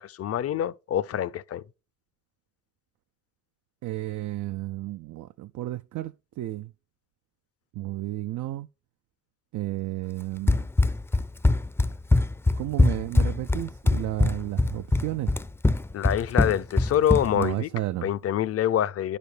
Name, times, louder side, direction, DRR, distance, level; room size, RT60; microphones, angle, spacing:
voice 1, 0.0-1.6 15.9-17.7 18.0-19.2, left 10 dB, 50° left, 0.6 m, -26 dB
voice 2, 3.8-6.7 7.8-8.7 9.5-10.7 12.6-15.3 17.3-18.1, right 16 dB, 75° right, 0.5 m, -32 dB
Run, 10.5-17.5, left 2 dB, 10° left, 0.5 m, -22 dB
10.5 x 6.9 x 3.3 m
cardioid pair, 90°, 30 cm